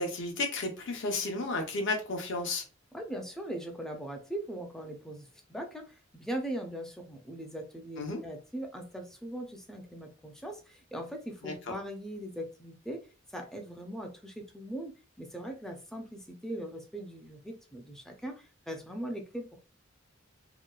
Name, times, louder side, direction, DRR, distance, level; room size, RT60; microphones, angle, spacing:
voice 1, 0.0-2.6 8.0-8.2 11.4-11.5, left 2 dB, 60° left, 0.7 m, -32 dB
voice 2, 2.9-13.1 13.3-19.6, right 1 dB, ahead, 0.4 m, -40 dB
2.9 x 2.2 x 2.2 m
head